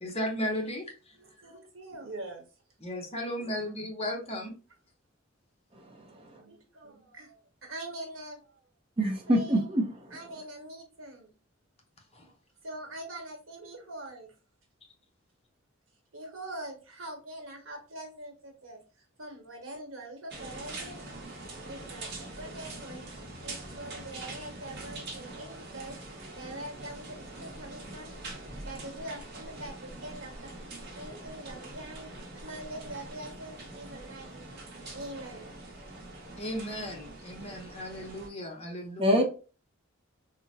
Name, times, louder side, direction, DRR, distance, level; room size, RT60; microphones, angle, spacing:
voice 1, 0.0-1.1 2.8-4.5 12.1-12.3 36.4-39.2, equal, 30° left, 0.8 m, -35 dB
voice 2, 1.2-2.4 3.2-3.7 6.1-8.6 9.3-9.6 10.1-11.3 12.6-14.3 16.1-23.0 23.4-26.0 26.4-28.4 28.6-30.5 30.9-34.6 34.9-35.5 38.3-38.6, right 1 dB, 80° right, 1.2 m, -44 dB
voice 3, 5.9-6.4 9.0-10.2 39.0-39.2, equal, 30° right, 0.6 m, -26 dB
sound 1, 20.3-38.3, right 2 dB, 55° right, 0.9 m, -44 dB
3.8 x 2.1 x 2.7 m
head